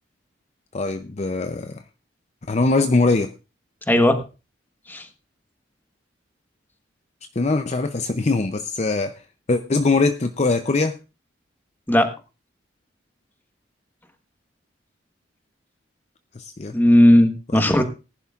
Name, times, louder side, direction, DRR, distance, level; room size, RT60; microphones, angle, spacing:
voice 1, 0.7-1.8 2.5-3.3 7.4-9.2 9.5-11.0 16.3-16.7 17.5-17.8, left 3 dB, 35° left, 8 dB, 0.5 m, -22 dB
voice 2, 3.9-4.2 4.9-5.1 11.9-12.1 16.7-17.8, left 1 dB, 10° left, 8 dB, 1.2 m, -16 dB
19.5 x 11.0 x 2.4 m, 0.30 s
head